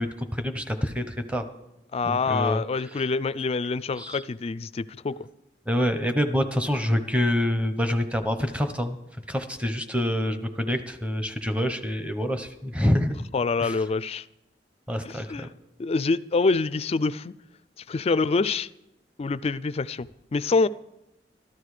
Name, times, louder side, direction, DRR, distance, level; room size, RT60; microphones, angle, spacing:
voice 1, 0.0-1.4 2.0-2.6 4.0-4.2 5.7-9.0 9.3-13.2 13.6-13.7 14.9-15.5, left 1 dB, 5° right, 8 dB, 0.9 m, -26 dB
voice 2, 1.9-5.3 13.3-14.3 15.0-15.5 15.8-17.3 17.9-18.7 19.2-20.7, left 4 dB, 35° left, 17 dB, 0.4 m, -26 dB
13.5 x 12.5 x 4.9 m, 0.91 s
head